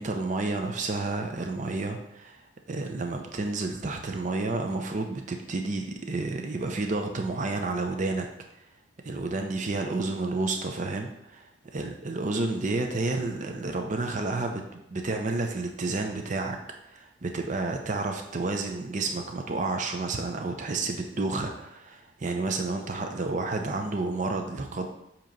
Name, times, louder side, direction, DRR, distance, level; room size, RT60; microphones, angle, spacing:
voice 1, 0.0-2.4 2.7-8.3 9.0-16.6 16.9-24.9, right 3 dB, 40° right, 4 dB, 0.6 m, -30 dB
7.6 x 3.0 x 5.2 m, 0.83 s
head